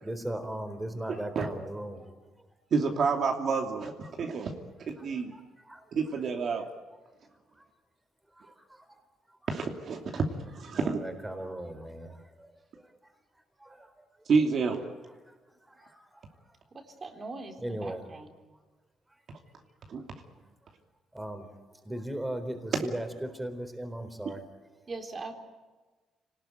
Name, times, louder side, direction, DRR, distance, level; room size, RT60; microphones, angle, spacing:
voice 1, 0.0-2.1 4.1-4.2 5.0-5.8 8.4-9.0 10.7-13.1 13.6-14.1 15.7-16.2 17.6-18.0 21.1-21.5 21.8-24.4, right 1 dB, 10° right, 8 dB, 4.0 m, -38 dB
voice 2, 2.7-4.5 4.9-5.3 5.9-6.7 9.5-11.0 14.3-14.8 19.9-20.0, right 5 dB, 60° right, 2 dB, 2.7 m, -29 dB
voice 3, 16.7-18.3 24.9-25.3, right 3 dB, 35° right, 4 dB, 3.8 m, -41 dB
26.5 x 19.5 x 9.2 m, 1.3 s
cardioid pair, 90°, 0 cm